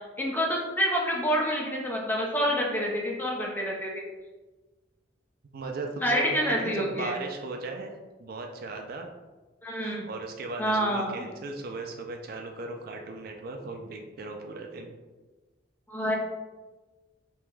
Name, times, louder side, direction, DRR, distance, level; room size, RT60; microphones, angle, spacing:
voice 1, 0.2-4.0 6.0-7.1 9.6-10.1 10.6-11.2 15.9-16.2, equal, 10° left, -2 dB, 0.6 m, -27 dB
voice 2, 5.5-7.9 8.2-9.1 9.8-14.9, right 3 dB, 50° right, 3 dB, 0.4 m, -37 dB
3.4 x 2.9 x 3.2 m, 1.2 s
head